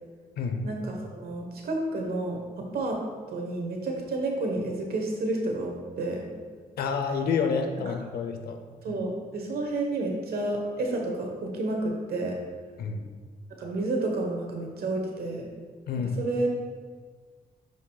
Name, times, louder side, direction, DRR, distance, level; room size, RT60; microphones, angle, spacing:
voice 1, 0.6-3.0 3.3-6.3 7.9-8.0 8.8-12.4 13.6-15.5 16.2-16.5, right 2 dB, 80° right, 1 dB, 1.2 m, -30 dB
voice 2, 6.8-8.6 8.9-9.0 12.8-13.0 15.9-16.2, left 5 dB, 90° left, 5 dB, 0.7 m, -29 dB
9.6 x 5.1 x 2.3 m, 1.5 s
cardioid pair, 80°, 16 cm